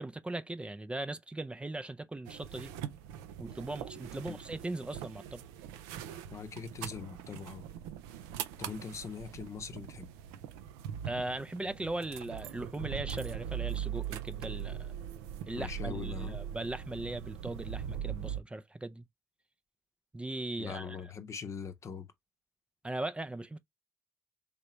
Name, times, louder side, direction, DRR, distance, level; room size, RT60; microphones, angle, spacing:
voice 1, 0.0-2.7 3.4-5.4 11.1-14.9 15.5-19.0 20.1-21.0 22.8-23.6, right 2 dB, 15° right, 0.4 m, -39 dB
sound 1, 2.3-18.4, right 10 dB, 85° right, 0.4 m, -41 dB
voice 2, 6.3-7.6 8.6-10.1 15.5-16.4 20.6-22.1, left 6 dB, 50° left, 0.7 m, -42 dB
3.3 x 2.9 x 3.0 m
hypercardioid pair, 50°, 7 cm